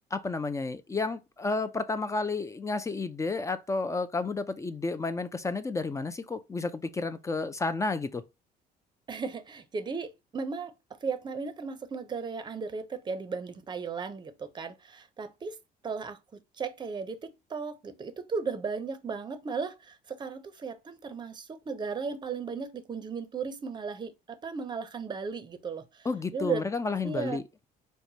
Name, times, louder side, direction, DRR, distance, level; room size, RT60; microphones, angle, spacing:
voice 1, 0.1-8.2 26.0-27.4, left 3 dB, 20° left, 0.3 m, -31 dB
voice 2, 9.1-10.7 11.0-15.6 15.8-16.2 16.6-26.1 26.3-26.6 27.0-27.4, right 5 dB, 25° right, 0.6 m, -35 dB
4.6 x 2.1 x 2.7 m
cardioid pair, 110°, 17 cm